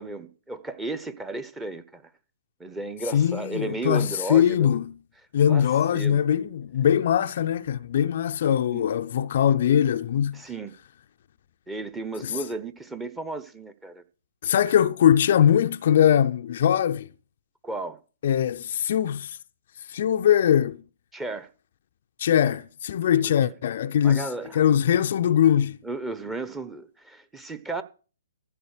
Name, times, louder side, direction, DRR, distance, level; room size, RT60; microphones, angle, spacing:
voice 1, 0.0-2.1 2.6-4.8 5.5-6.2 8.7-8.9 10.3-10.8 11.7-14.0 17.6-18.0 21.1-21.5 23.1-23.3 24.0-24.6 25.8-27.8, right 2 dB, 10° right, 1.0 m, -34 dB
voice 2, 3.1-5.0 5.3-10.4 12.2-12.3 14.4-17.1 18.2-19.4 19.9-20.8 22.2-24.3 24.5-25.8, left 9 dB, 50° left, 0.6 m, -21 dB
14.5 x 7.1 x 6.6 m
figure-of-eight pair, 125°, 0 cm